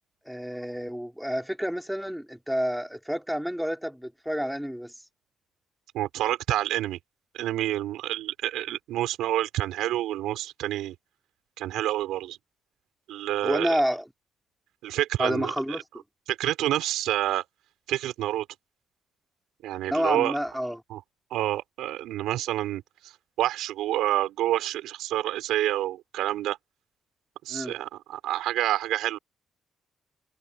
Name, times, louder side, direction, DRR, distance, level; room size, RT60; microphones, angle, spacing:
voice 1, 0.3-4.9 13.4-14.1 15.2-15.8 19.9-20.8 27.5-27.8, equal, ahead, 5.5 m, -29 dB
voice 2, 5.9-7.0 7.3-10.9 11.6-12.4 13.1-13.8 14.8-15.8 16.3-17.4 17.9-18.4 19.6-20.4 20.9-21.0 21.3-22.8 23.4-26.6 27.4-29.2, right 14 dB, 80° right, 6.3 m, -28 dB
supercardioid pair, 55°, 0 cm